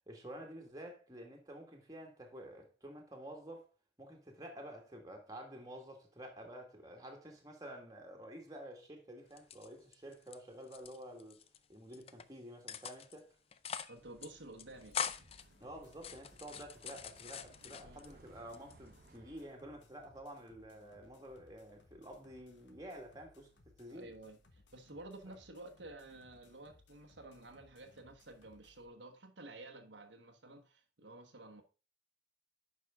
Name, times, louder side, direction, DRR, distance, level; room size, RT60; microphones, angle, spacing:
voice 1, 0.1-3.7 4.0-11.4 11.7-13.3 15.6-24.1, right 1 dB, 20° right, 1.8 m, -50 dB
sound 1, 9.3-10.4 10.6-11.6 11.9-12.2 12.7-13.2 13.5-14.0 14.2-14.3 14.6-15.4 15.9-18.1 18.5-19.2, left 8 dB, 30° left, 0.4 m, -43 dB
voice 2, 13.9-15.0 17.8-18.0 23.9-24.4 24.7-31.6, right 2 dB, 80° right, 1.2 m, -52 dB
Bus, 14.0-19.5, right 2 dB, 50° right, 0.9 m, -63 dB
sound 2, 14.7-28.9, left 2 dB, 75° left, 1.4 m, -66 dB
9.5 x 5.6 x 3.6 m
head